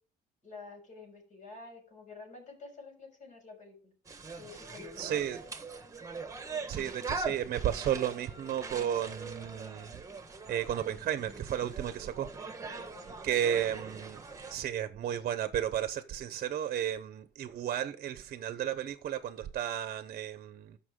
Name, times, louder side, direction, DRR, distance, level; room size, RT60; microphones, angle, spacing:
voice 1, 0.4-3.9 4.4-5.6 12.6-13.6, left 4 dB, 45° left, 6.3 m, -50 dB
sound 1, 4.0-14.6, right 4 dB, 20° right, 1.4 m, -42 dB
voice 2, 5.0-5.4 6.7-9.9 10.5-12.3 13.2-20.8, right 10 dB, 55° right, 0.9 m, -33 dB
14.0 x 5.9 x 3.7 m
cardioid pair, 110°, 17 cm